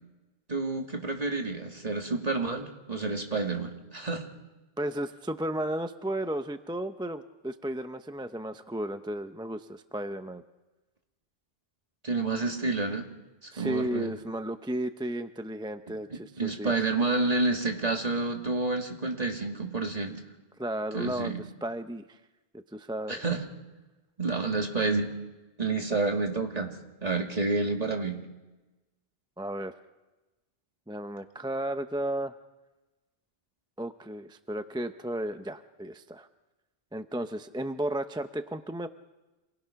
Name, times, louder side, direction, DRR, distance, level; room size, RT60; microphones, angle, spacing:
voice 1, 0.5-4.2 12.0-13.1 13.4-14.1 16.1-20.2 20.9-21.4 23.1-23.4 24.2-25.1 25.6-26.7 27.0-28.2, right 3 dB, 35° right, 2 dB, 2.3 m, -29 dB
voice 2, 4.8-10.4 13.5-16.7 20.6-22.2 22.7-23.2 29.4-29.7 30.9-32.4 33.8-36.3 36.9-38.9, right 1 dB, 5° right, 9 dB, 0.4 m, -34 dB
27.0 x 20.0 x 5.8 m, 1.1 s
omnidirectional pair, 1.1 m